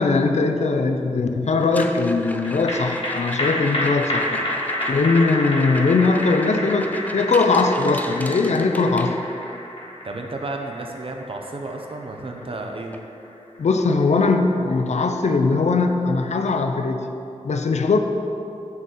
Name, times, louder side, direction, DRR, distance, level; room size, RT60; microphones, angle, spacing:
voice 1, 0.0-4.5 4.9-9.2 13.6-17.1 17.4-18.0, left 3 dB, 70° left, 6 dB, 0.6 m, -20 dB
sound 1, 1.6-9.6 11.8-11.9 12.2-12.5 12.9-13.0 13.6-13.7 15.6-15.7, left 1 dB, 15° left, 0.4 m, -37 dB
sound 2, 2.4-15.1 15.4-15.5, left 1 dB, 45° left, 1.6 m, -30 dB
voice 2, 10.0-13.0, right 2 dB, 50° right, 3 dB, 0.8 m, -32 dB
7.1 x 4.2 x 6.6 m, 2.8 s
wide cardioid pair, 80°, 12 cm